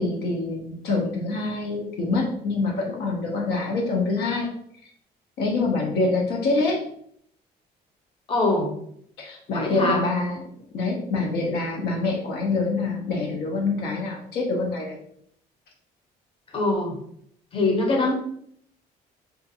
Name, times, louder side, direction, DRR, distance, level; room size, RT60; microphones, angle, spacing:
voice 1, 0.0-4.5 5.4-6.9 9.2-10.4 10.7-15.0, left 3 dB, 70° left, 0 dB, 0.5 m, -25 dB
voice 2, 8.3-8.7 9.5-10.0 16.5-17.0 17.5-18.1, left 2 dB, 30° left, 1 dB, 0.7 m, -23 dB
2.4 x 2.3 x 2.6 m, 0.68 s
cardioid pair, 110°, 17 cm